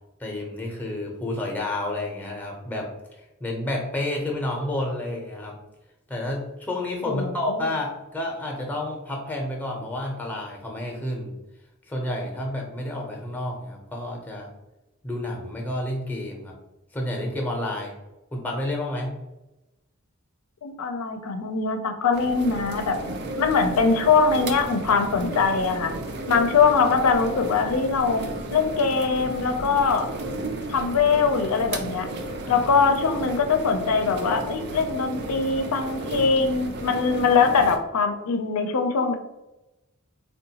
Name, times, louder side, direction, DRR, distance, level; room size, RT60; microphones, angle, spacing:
voice 1, 0.2-2.9 3.2-5.6 6.1-11.3 11.9-14.5 15.0-16.5 16.9-18.0 18.3-19.2 32.4-32.7, left 1 dB, 10° left, 0 dB, 0.5 m, -30 dB
voice 2, 7.1-7.7 20.6-23.0 23.4-25.9 26.3-28.3 28.5-30.1 30.7-32.1 32.5-39.2, left 5 dB, 85° left, 6 dB, 0.4 m, -22 dB
sound 1, 22.1-37.8, right 2 dB, 50° right, 0.4 m, -33 dB
3.7 x 2.2 x 2.8 m, 0.98 s
head